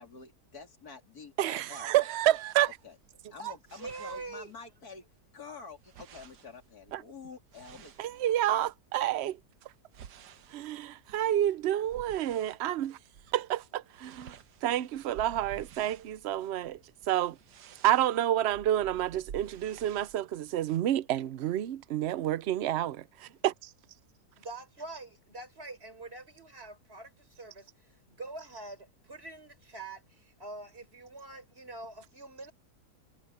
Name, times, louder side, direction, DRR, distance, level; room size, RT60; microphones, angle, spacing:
voice 1, 0.0-2.4 2.8-3.0 3.3-5.0 5.3-8.3, left 4 dB, 65° left, 3.7 m, -48 dB
voice 2, 1.4-2.7 6.9-7.0 8.0-9.4 10.5-13.0 13.3-14.3 14.6-16.8 17.1-17.4 17.8-23.7, right 12 dB, 60° right, 0.7 m, -29 dB
sound 1, 2.3-4.9 5.2-8.8 9.3-12.7 13.1-13.4 13.6-20.2, right 8 dB, 90° right, 1.5 m, -52 dB
voice 3, 3.4-4.5 24.4-32.5, right 3 dB, 35° right, 5.1 m, -44 dB
omnidirectional pair, 1.7 m